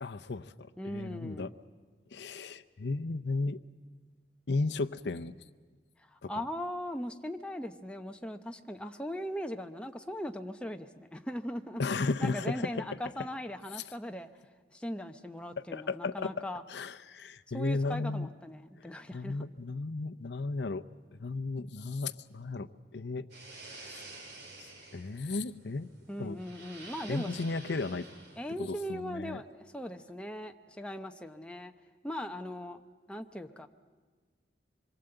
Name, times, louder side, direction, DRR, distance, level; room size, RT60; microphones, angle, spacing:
voice 1, 0.0-1.5 2.1-3.6 4.5-5.4 6.2-6.4 11.8-12.6 15.7-16.3 16.7-18.3 18.8-20.8 21.2-23.3 23.8-23.9 24.6-25.9 26.2-26.4 27.1-28.1 28.6-29.4, left 3 dB, 75° left, 11 dB, 0.6 m, -34 dB
voice 2, 0.8-1.6 6.1-14.3 14.7-16.6 17.5-19.4 26.1-27.4 28.4-31.7 32.0-32.8 33.1-33.7, equal, 5° left, 5 dB, 0.8 m, -39 dB
sound 1, 23.3-28.6, right 2 dB, 65° right, 3.9 m, -50 dB
25.5 x 22.5 x 7.9 m, 1.4 s
head